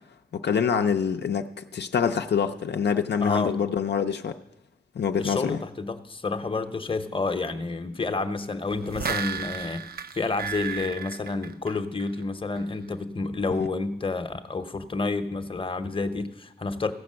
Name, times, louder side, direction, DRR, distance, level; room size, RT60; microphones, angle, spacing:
voice 1, 0.3-4.3 5.0-5.6, left 7 dB, 85° left, 6 dB, 0.5 m, -25 dB
voice 2, 3.2-3.6 5.2-9.9 10.1-16.9, left 3 dB, 30° left, 9 dB, 0.8 m, -29 dB
sound 1, 8.7-12.2 12.6-12.7, right 6 dB, 65° right, 0.5 m, -34 dB
15.0 x 6.0 x 7.4 m, 0.87 s
wide cardioid pair, 90°, 17 cm